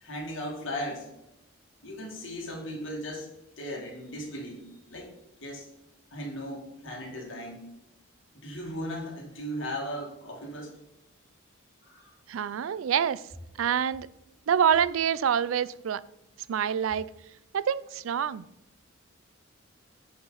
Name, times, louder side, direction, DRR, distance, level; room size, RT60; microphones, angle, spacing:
voice 1, 0.0-1.1 1.8-3.3 3.6-5.1 5.4-5.7 6.1-7.7 8.3-10.7 11.8-12.1, equal, 70° left, -1 dB, 2.3 m, -37 dB
voice 2, 12.3-13.2 13.6-14.1 14.5-16.0 16.5-17.1 17.5-18.5, right 8 dB, 85° right, 19 dB, 0.4 m, -26 dB
9.8 x 5.3 x 4.0 m, 0.86 s
head